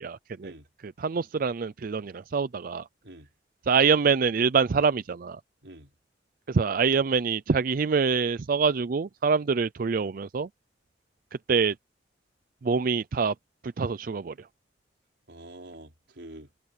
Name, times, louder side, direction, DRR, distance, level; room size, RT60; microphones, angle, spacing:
voice 1, 0.0-0.5 0.8-2.8 3.7-5.4 6.5-10.5 11.5-11.7 12.6-13.3 13.6-14.3, right 5 dB, 55° right, 0.4 m, -25 dB
voice 2, 5.6-5.9 15.3-16.5, right 1 dB, 85° right, 4.7 m, -46 dB
head